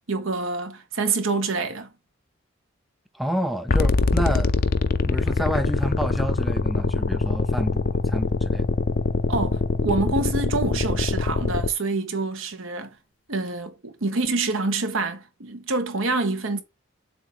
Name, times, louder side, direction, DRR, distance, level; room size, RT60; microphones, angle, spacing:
voice 1, 0.1-1.9 9.3-12.9 13.3-16.6, right 3 dB, 75° right, 1.2 m, -26 dB
voice 2, 3.1-4.5 5.0-8.7, equal, ahead, 0.5 m, -29 dB
sound 1, 3.7-11.7, left 3 dB, 45° left, 0.5 m, -23 dB
7.4 x 2.7 x 5.0 m
head